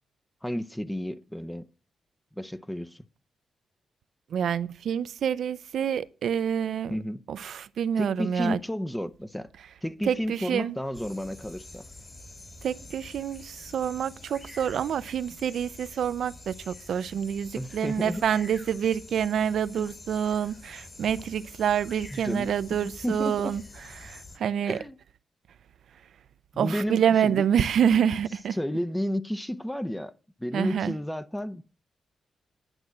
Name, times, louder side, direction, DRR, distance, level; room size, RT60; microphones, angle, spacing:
voice 1, 0.4-1.7 2.4-3.0 6.9-7.2 8.0-9.5 9.8-11.8 17.5-18.2 19.8-19.9 22.1-23.6 24.7-25.0 26.5-27.5 28.5-30.1 30.4-31.6, equal, 5° left, 0.6 m, -32 dB
voice 2, 4.3-6.9 7.3-8.6 10.1-10.8 12.6-23.6 24.0-24.8 26.6-28.6 30.5-30.9, right 8 dB, 75° right, 0.4 m, -27 dB
sound 1, 10.9-24.4, left 2 dB, 30° left, 2.4 m, -47 dB
10.5 x 6.1 x 7.6 m
cardioid pair, 100°, 0 cm